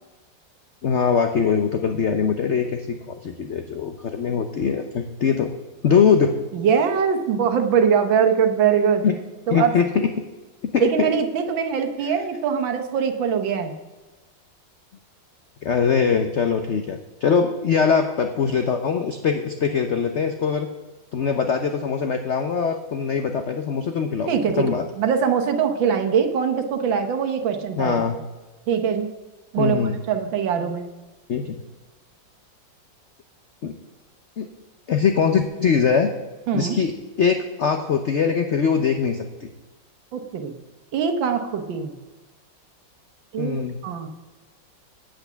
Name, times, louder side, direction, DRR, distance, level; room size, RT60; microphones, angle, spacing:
voice 1, 0.8-5.5 5.8-6.4 9.0-9.2 9.5-10.1 10.7-11.1 15.6-20.7 21.1-24.8 27.8-28.2 29.6-30.0 31.3-31.6 33.6-33.7 34.4-34.5 34.9-36.1 36.5-36.9 37.2-39.5 43.4-43.8, left 6 dB, 65° left, 6 dB, 0.7 m, -22 dB
voice 2, 6.5-9.0 9.5-9.7 10.8-13.7 24.3-28.2 28.7-29.1 29.5-30.9 36.5-36.8 40.1-40.6 40.9-41.9 43.3-43.6 43.8-44.1, right 7 dB, 90° right, 6 dB, 1.8 m, -22 dB
8.4 x 8.1 x 6.8 m, 1.1 s
omnidirectional pair, 2.0 m